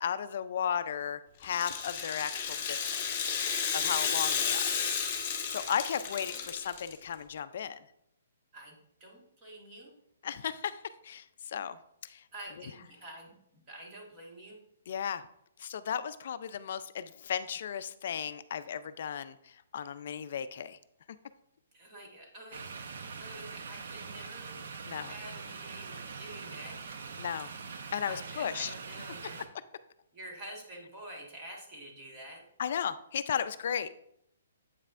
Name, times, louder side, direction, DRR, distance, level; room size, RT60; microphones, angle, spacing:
voice 1, 0.0-3.1 3.7-4.7 5.5-7.8 10.2-11.8 12.0-12.2 14.9-15.2 15.6-20.8 24.9-25.1 27.2-27.5 27.9-28.7 32.6-33.9, left 8 dB, 50° left, 12 dB, 0.4 m, -35 dB
Rattle (instrument), 1.4-6.9, left 7 dB, 30° left, 1.1 m, -32 dB
voice 2, 6.0-6.5 8.5-9.9 12.3-14.6 21.7-22.6 23.2-24.5 25.1-26.8 28.0-29.4 30.1-32.4, right 1 dB, 20° right, -2 dB, 1.6 m, -48 dB
sound 1, 22.5-29.5, right 5 dB, 65° right, 0.7 m, -43 dB
8.1 x 5.4 x 2.5 m, 0.73 s
hypercardioid pair, 165°, 0 cm